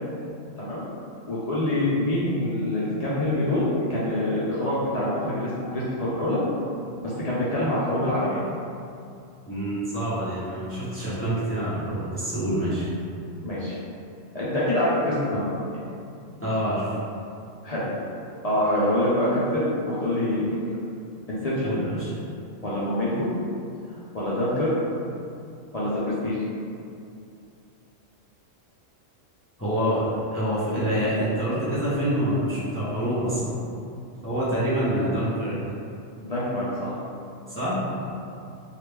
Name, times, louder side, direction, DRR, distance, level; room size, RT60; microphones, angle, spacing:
voice 1, 1.3-6.5 7.0-8.4 13.4-13.8 14.3-15.8 17.6-17.8 18.4-20.6 21.3-21.7 22.6-23.3 24.1-24.7 25.7-26.4 36.2-36.9, left 1 dB, 60° left, -9 dB, 0.4 m, -25 dB
voice 2, 9.5-12.9 16.4-17.0 21.6-22.1 29.6-33.6 34.2-35.6 37.5-37.8, right 1 dB, 15° left, -11 dB, 0.6 m, -26 dB
3.1 x 2.4 x 3.3 m, 2.5 s
omnidirectional pair, 1.4 m